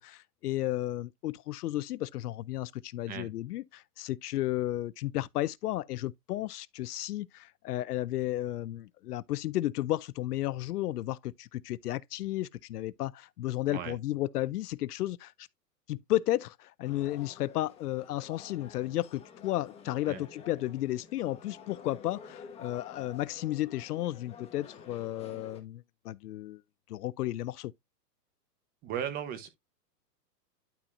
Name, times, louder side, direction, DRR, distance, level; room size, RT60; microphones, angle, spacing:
voice 1, 0.0-15.5 15.9-26.6 26.9-27.7, left 15 dB, 70° left, 0.6 m, -33 dB
sound 1, 16.8-25.6, left 7 dB, 10° left, 1.1 m, -50 dB
voice 2, 28.8-29.5, right 9 dB, 20° right, 0.9 m, -36 dB
12.0 x 4.2 x 2.5 m
hypercardioid pair, 155°, 48 cm